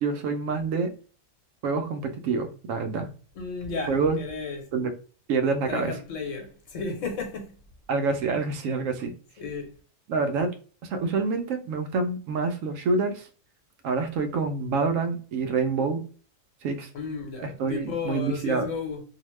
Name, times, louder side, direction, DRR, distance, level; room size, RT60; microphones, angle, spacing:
voice 1, 0.0-0.9 1.6-3.1 3.9-4.2 4.7-4.9 5.3-5.9 7.9-9.1 10.1-10.5 10.8-13.3 13.8-16.0 16.6-16.9 17.4-18.7, right 4 dB, 80° right, 0.9 m, -27 dB
voice 2, 3.3-4.7 5.7-7.6 9.4-9.8 16.9-19.0, left 4 dB, 70° left, 1.2 m, -33 dB
2.8 x 2.1 x 3.1 m
omnidirectional pair, 1.4 m